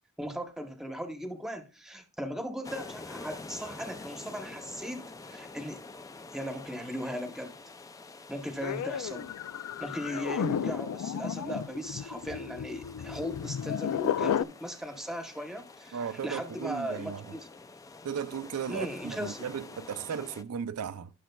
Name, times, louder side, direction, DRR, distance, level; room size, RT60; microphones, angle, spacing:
voice 1, 0.2-5.8 6.3-7.5 8.3-9.3 9.8-17.5 18.7-19.5, equal, ahead, 0.9 m, -38 dB
sound 1, 2.6-20.4, left 3 dB, 15° left, 0.3 m, -48 dB
sound 2, 8.6-14.4, left 8 dB, 90° left, 0.3 m, -33 dB
voice 2, 15.9-17.4 18.0-21.1, right 7 dB, 80° right, 0.4 m, -36 dB
14.5 x 6.2 x 2.3 m
head